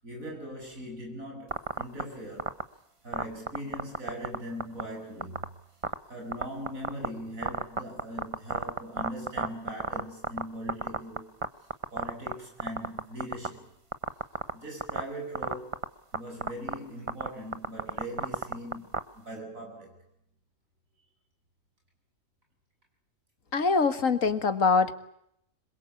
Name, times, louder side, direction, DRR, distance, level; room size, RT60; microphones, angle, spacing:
voice 1, 0.0-2.6 3.0-5.5 6.1-11.3 11.9-13.7 14.5-15.9 16.1-20.0, equal, 80° right, 8.6 m, -40 dB
sound 1, 1.5-2.0 2.4-2.6 3.1-4.4 4.6-4.8 5.2-5.4 5.8-5.9 6.3-7.1 7.4-10.4 10.7-11.5 11.7-12.3 12.6-13.5 13.9-14.5 14.8-15.0 15.4-15.8 16.1-16.2 16.4-16.7 17.1-19.0, right 3 dB, 25° right, 1.0 m, -28 dB
voice 2, 23.5-24.9, left 4 dB, 75° left, 2.2 m, -23 dB
26.5 x 22.5 x 8.5 m
omnidirectional pair, 1.4 m